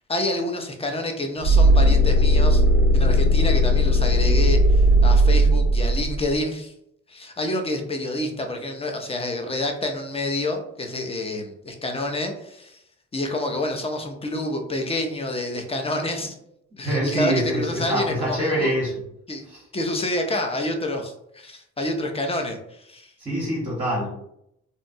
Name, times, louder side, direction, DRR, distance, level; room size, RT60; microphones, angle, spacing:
voice 1, 0.1-2.6 2.9-6.7 7.1-12.8 13.1-16.3 16.8-18.7 19.3-19.4 19.7-23.1, left 1 dB, 20° left, 4 dB, 0.5 m, -28 dB
sound 1, 1.4-6.3, equal, 40° right, 0.4 m, -17 dB
voice 2, 16.8-18.9 19.5-19.6 23.2-24.1, right 1 dB, 20° right, -6 dB, 0.9 m, -25 dB
2.7 x 2.1 x 2.6 m, 0.77 s
cardioid pair, 90°, 30 cm